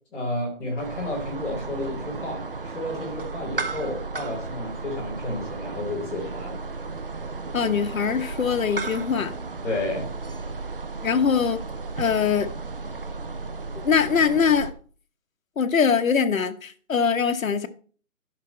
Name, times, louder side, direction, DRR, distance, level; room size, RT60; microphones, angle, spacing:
voice 1, 0.1-6.6 9.6-10.1, left 1 dB, 5° left, 1.9 m, -31 dB
sound 1, 0.8-14.7, right 3 dB, 40° right, 0.6 m, -34 dB
voice 2, 7.5-9.3 11.0-11.6 12.0-12.5 13.8-14.7 15.6-17.7, left 6 dB, 70° left, 1.1 m, -22 dB
12.0 x 5.7 x 4.3 m
hypercardioid pair, 180°, 42 cm